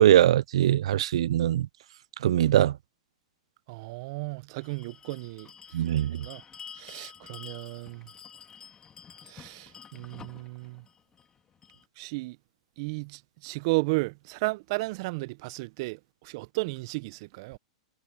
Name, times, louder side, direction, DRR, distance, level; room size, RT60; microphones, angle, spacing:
voice 1, 0.0-1.7 2.2-2.7 5.7-6.2, right 12 dB, 70° right, 0.4 m, -21 dB
voice 2, 3.7-5.5 6.2-6.4 6.8-8.1 9.3-10.8 12.0-12.4 12.8-17.6, right 26 dB, 50° right, 0.8 m, -34 dB
Bell, 4.6-11.8, left 7 dB, 20° left, 2.3 m, -49 dB
hypercardioid pair, 115°, 3 cm